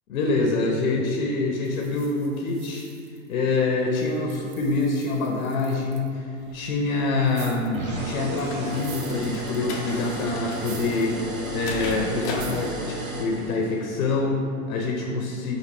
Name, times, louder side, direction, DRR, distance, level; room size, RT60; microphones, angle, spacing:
voice 1, 0.1-2.9 3.3-11.2 11.5-15.6, left 3 dB, 80° left, 1 dB, 0.7 m, -26 dB
sound 1, 1.6-3.6 3.9-6.1 7.2-7.9 8.4-9.8 10.5-11.1 11.5-11.6 12.3-12.8, right 7 dB, 50° right, 0.6 m, -46 dB
sound 2, 6.4-12.6, left 3 dB, 30° left, 0.4 m, -38 dB
sound 3, 7.7-13.9, right 2 dB, 65° right, 1.0 m, -34 dB
4.2 x 2.7 x 4.2 m, 2.5 s
hypercardioid pair, 130°, 43 cm